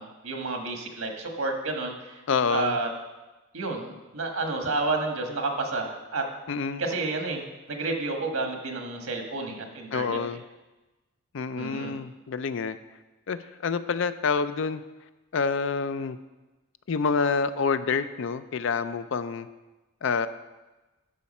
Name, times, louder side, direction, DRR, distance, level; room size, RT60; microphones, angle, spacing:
voice 1, 0.0-2.2 2.5-2.9 3.5-6.3 6.8-10.2 11.6-12.0, right 3 dB, 90° right, 3 dB, 1.5 m, -30 dB
voice 2, 2.3-2.8 6.5-6.8 9.9-10.4 11.3-12.8 13.3-14.8 15.3-16.2 16.9-19.5 20.0-20.3, left 5 dB, 60° left, 12 dB, 0.4 m, -27 dB
11.5 x 5.8 x 4.2 m, 1.1 s
head